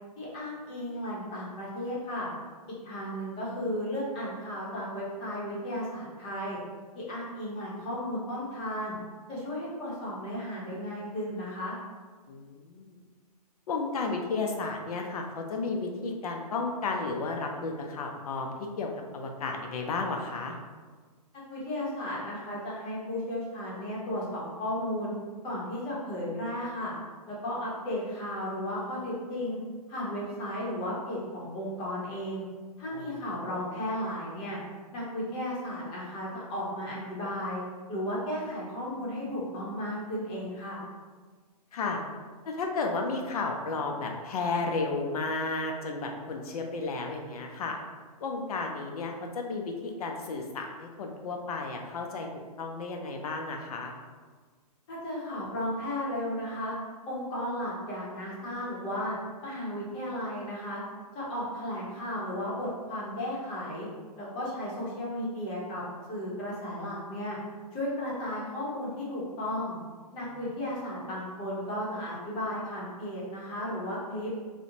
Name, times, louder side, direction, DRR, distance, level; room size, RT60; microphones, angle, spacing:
voice 1, 0.2-2.3 2.8-6.6 6.9-8.9 9.3-11.8 21.5-25.1 25.4-26.9 27.3-29.6 29.9-32.4 32.8-34.6 34.9-37.6 37.9-40.8 54.9-56.8 57.1-60.8 61.1-63.9 64.2-65.8 66.1-67.4 67.7-69.8 70.1-74.3, left 1 dB, 25° left, -5 dB, 0.9 m, -34 dB
voice 2, 12.3-13.0 13.7-20.6 32.9-33.7 41.7-42.0 42.5-47.8 48.2-52.3 52.6-53.9 70.2-70.3, left 3 dB, 70° left, 2 dB, 0.4 m, -33 dB
2.5 x 2.1 x 2.8 m, 1.5 s
hypercardioid pair, 130°, 20 cm